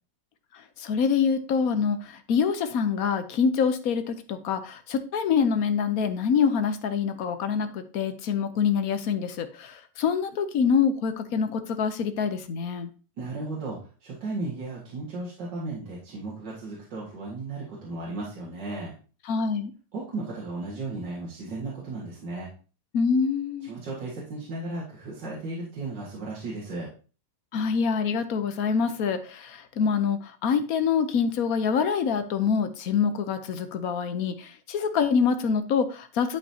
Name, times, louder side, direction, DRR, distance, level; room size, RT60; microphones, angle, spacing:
voice 1, 0.8-12.9 19.3-19.7 22.9-23.7 27.5-36.4, left 6 dB, 60° left, 10 dB, 1.1 m, -25 dB
voice 2, 13.2-18.9 19.9-22.5 23.6-26.9, right 2 dB, 70° right, -5 dB, 2.5 m, -35 dB
11.0 x 5.5 x 2.8 m, 0.36 s
omnidirectional pair, 2.0 m